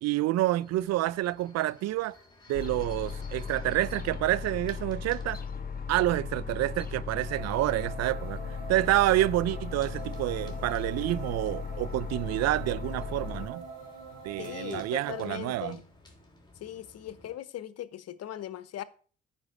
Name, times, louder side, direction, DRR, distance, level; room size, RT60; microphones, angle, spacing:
voice 1, 0.0-2.1 2.5-5.4 5.9-8.4 8.7-13.6 14.2-15.8, right 16 dB, 60° right, 0.5 m, -28 dB
sound 1, 0.6-17.4, left 2 dB, 15° left, 3.4 m, -57 dB
sound 2, 2.5-13.5, left 6 dB, 30° left, 1.7 m, -37 dB
sound 3, 7.2-15.2, right 5 dB, 75° right, 4.1 m, -45 dB
voice 2, 14.4-15.8 16.6-18.8, left 11 dB, 55° left, 1.0 m, -39 dB
9.6 x 5.3 x 6.1 m
hypercardioid pair, 45°, 30 cm